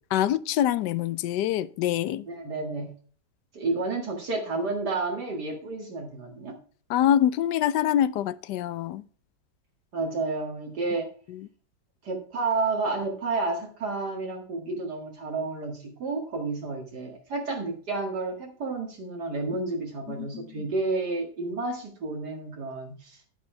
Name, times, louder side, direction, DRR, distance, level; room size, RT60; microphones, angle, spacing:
voice 1, 0.1-2.3 6.9-9.0 11.3-11.5 20.1-20.5, left 11 dB, 80° left, 1.2 m, -25 dB
voice 2, 2.3-2.9 3.5-6.6 9.9-11.1 12.0-23.2, right 3 dB, 70° right, 2.5 m, -31 dB
9.6 x 9.6 x 3.3 m
omnidirectional pair, 1.8 m